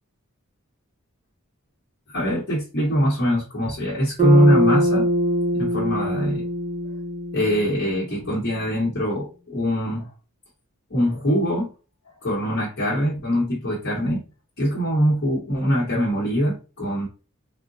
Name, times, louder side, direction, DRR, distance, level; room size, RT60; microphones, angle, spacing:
voice 1, 2.1-5.0 5.5-6.5 7.3-10.1 10.9-11.7 12.2-14.2 14.6-17.1, equal, 50° left, -5 dB, 0.9 m, -22 dB
Bass guitar, 4.2-8.6, equal, 30° right, 0.8 m, -23 dB
3.7 x 2.1 x 2.5 m, 0.33 s
head